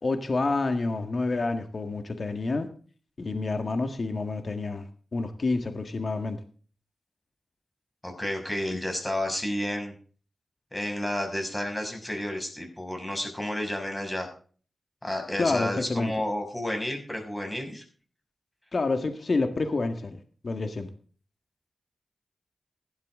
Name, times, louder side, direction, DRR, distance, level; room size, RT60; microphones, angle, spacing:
voice 1, 0.0-2.7 3.2-4.9 5.1-6.4 15.4-16.1 18.7-20.9, left 3 dB, 60° left, 1.8 m, -28 dB
voice 2, 8.0-9.9 10.7-14.3 15.0-17.8, left 1 dB, 15° left, 6.4 m, -31 dB
16.5 x 12.0 x 3.8 m
cardioid pair, 45°, 0 cm